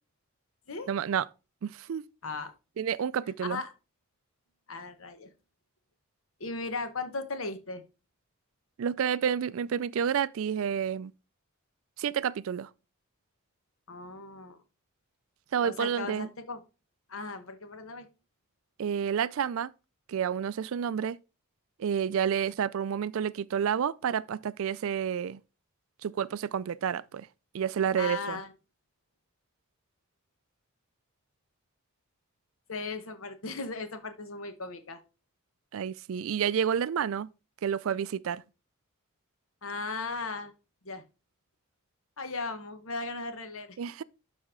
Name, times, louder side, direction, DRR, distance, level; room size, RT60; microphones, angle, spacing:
voice 1, 0.9-1.3 1.6-2.1 2.8-3.6 8.8-11.1 12.0-12.7 15.5-16.3 18.8-19.7 20.1-21.2 21.8-25.4 26.0-27.3 27.5-28.4 35.7-37.3 37.6-38.4 43.8-44.0, right 8 dB, 65° right, 0.3 m, -29 dB
voice 2, 2.2-2.5 3.5-3.7 4.7-5.3 6.4-7.8 13.9-14.6 15.6-16.6 17.1-18.1 28.0-28.5 32.7-35.0 39.6-40.5 40.8-41.0 42.2-43.8, left 3 dB, 65° left, 1.1 m, -37 dB
12.0 x 4.2 x 3.6 m
head